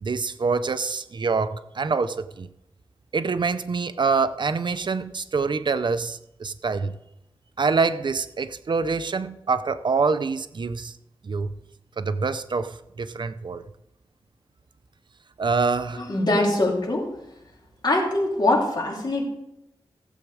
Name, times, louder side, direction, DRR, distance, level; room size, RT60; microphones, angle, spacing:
voice 1, 0.0-2.5 3.1-7.0 7.6-10.9 11.2-11.5 12.0-13.6 15.4-16.0, right 4 dB, 55° right, 12 dB, 0.6 m, -25 dB
voice 2, 15.9-17.1 17.8-19.3, left 2 dB, 50° left, -1 dB, 3.0 m, -23 dB
15.5 x 8.1 x 4.8 m, 0.85 s
wide cardioid pair, 130°, 9 cm